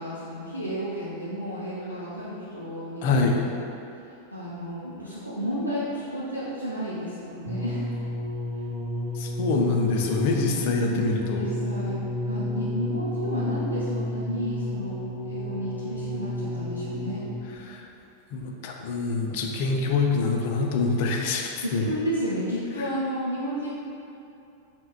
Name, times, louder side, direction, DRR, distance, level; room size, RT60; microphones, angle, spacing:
voice 1, 0.0-3.1 3.3-3.5 4.3-7.9 8.6-8.7 10.2-11.1 11.4-17.2 21.6-23.7, equal, 90° right, -10 dB, 0.5 m, -32 dB
voice 2, 3.0-3.5 9.1-11.5 17.7-17.9 18.3-21.8 22.8-22.9, left 3 dB, 50° left, 1 dB, 0.4 m, -25 dB
sound 1, 7.5-17.6 18.4-18.5, left 1 dB, 30° right, 0.5 m, -31 dB
5.5 x 2.2 x 2.3 m, 2.8 s
figure-of-eight pair, 90°, 0 cm